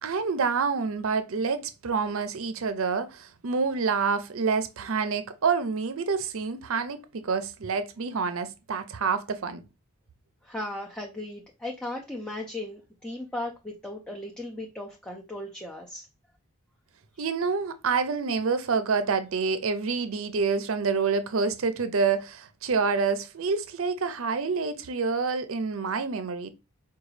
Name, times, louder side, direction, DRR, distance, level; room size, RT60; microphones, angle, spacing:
voice 1, 0.0-9.6 17.2-26.5, right 5 dB, 60° right, 0.5 m, -27 dB
voice 2, 10.4-16.1, left 1 dB, 5° left, 0.5 m, -36 dB
4.8 x 2.3 x 3.2 m
head